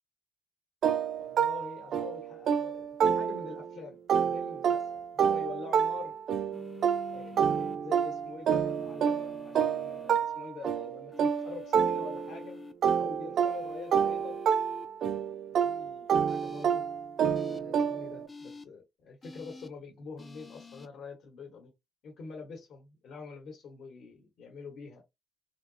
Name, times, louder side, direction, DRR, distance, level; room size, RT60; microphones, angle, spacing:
sound 1, 0.8-3.7 4.1-12.4 12.8-18.3, right 7 dB, 55° right, 0.4 m, -29 dB
voice 1, 1.2-6.1 7.1-12.6 13.0-14.4 15.5-16.8 17.2-21.7 22.0-25.0, left 5 dB, 65° left, 1.0 m, -46 dB
sound 2, 6.5-7.8 8.7-10.2 11.1-12.7 13.5-14.9 16.3-16.6 17.3-17.6 18.3-18.6 19.2-19.7 20.2-20.9, left 3 dB, 20° left, 0.3 m, -47 dB
3.4 x 2.7 x 2.6 m
cardioid pair, 165°, 0 cm